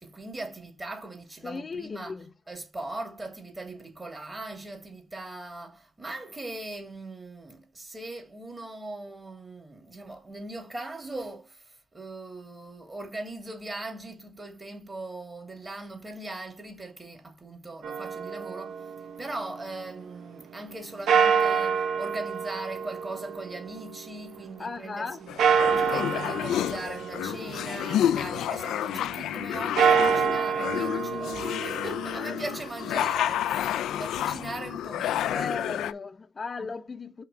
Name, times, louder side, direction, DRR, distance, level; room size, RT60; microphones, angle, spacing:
voice 1, 0.0-2.2 2.5-18.9 19.2-25.3 25.7-35.7 36.6-36.7, right 2 dB, 30° right, 2.6 m, -40 dB
voice 2, 1.4-2.3 24.6-25.2 35.3-37.2, left 4 dB, 40° left, 0.8 m, -36 dB
sound 1, 17.8-19.9 21.1-24.4 25.4-28.4 29.6-33.6, right 6 dB, 70° right, 0.7 m, -27 dB
sound 2, 25.3-35.9, left 11 dB, 75° left, 0.3 m, -30 dB
5.7 x 3.2 x 5.1 m
supercardioid pair, 50°, 0 cm